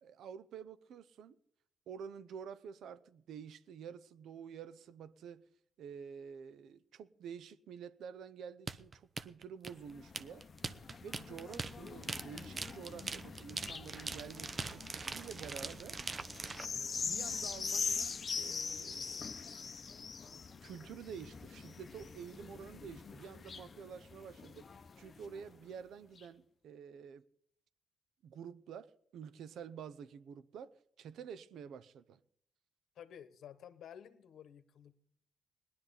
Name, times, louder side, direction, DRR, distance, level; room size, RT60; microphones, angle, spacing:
voice 1, 0.0-1.4 1.9-5.4 5.8-10.5 11.0-16.0 17.0-19.4 20.6-24.7 25.0-27.2 28.2-32.2, right 7 dB, 75° right, 0.7 m, -49 dB
sound 1, 8.7-16.6, right 4 dB, 35° right, 0.7 m, -42 dB
sound 2, 9.7-25.5 26.2-26.3, left 5 dB, 40° left, 0.8 m, -43 dB
voice 2, 32.9-35.0, left 9 dB, 70° left, 1.1 m, -53 dB
18.5 x 11.5 x 4.1 m
cardioid pair, 90°, 0 cm